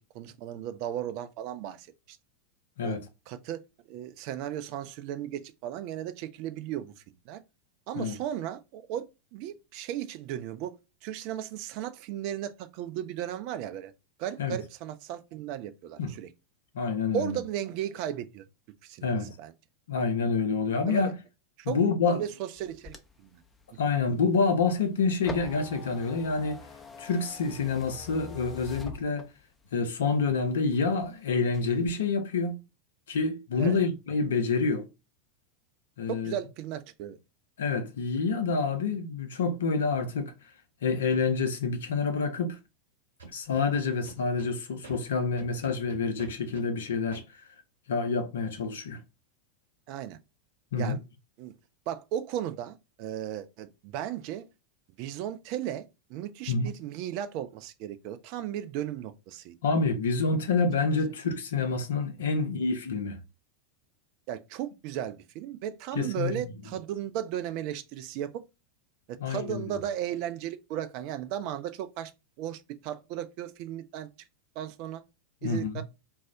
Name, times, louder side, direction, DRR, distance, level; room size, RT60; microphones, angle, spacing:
voice 1, 0.0-2.2 2.8-3.0 3.3-3.6 3.9-7.4 7.9-9.1 9.3-10.8 11.0-13.9 14.2-16.3 17.1-18.4 18.8-19.5 20.9-21.1 21.6-23.4 33.6-33.8 36.1-37.2 49.9-50.2 50.8-51.0 51.4-51.5 51.9-54.5 55.0-59.6 64.3-68.4 69.1-72.1 72.4-74.1 74.6-75.0 75.4-75.8, right 11 dB, 45° right, 0.4 m, -35 dB
voice 2, 16.7-17.4 19.0-19.4 19.9-21.1 21.6-22.2 23.8-26.6 27.0-29.3 29.7-32.6 33.1-34.9 36.0-36.3 37.6-40.3 40.8-42.6 43.3-47.2 47.9-49.0 50.7-51.0 56.5-56.7 59.6-63.2 66.0-66.4 69.2-69.6 75.4-75.8, left 4 dB, 65° left, 0.5 m, -27 dB
sound 1, 22.6-29.6 30.1-31.1 31.4-31.9, left 4 dB, 15° left, 0.5 m, -45 dB
Scratching (performance technique), 43.2-44.5 44.8-45.0 45.4-46.7 47.1-47.2, right 3 dB, 70° right, 1.0 m, -46 dB
2.3 x 2.0 x 3.7 m
figure-of-eight pair, 85°, 0 cm